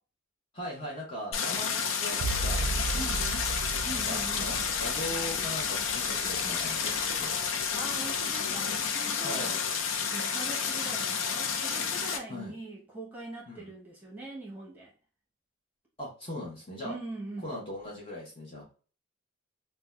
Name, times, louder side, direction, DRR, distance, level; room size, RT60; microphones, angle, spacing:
voice 1, 0.5-3.4 3.9-7.3 9.2-9.5 12.3-12.5 13.5-13.7 16.0-16.9 17.4-18.6, left 1 dB, 25° left, 0.8 m, -40 dB
Stream, 1.3-12.2, left 6 dB, 80° left, 0.4 m, -30 dB
sound 1, 2.2-7.6 8.1-8.7, right 3 dB, 60° right, 0.3 m, -36 dB
voice 2, 3.8-4.5 7.7-9.6 10.1-14.9 16.8-17.5, right 2 dB, 10° right, 1.0 m, -42 dB
2.6 x 2.2 x 3.2 m
head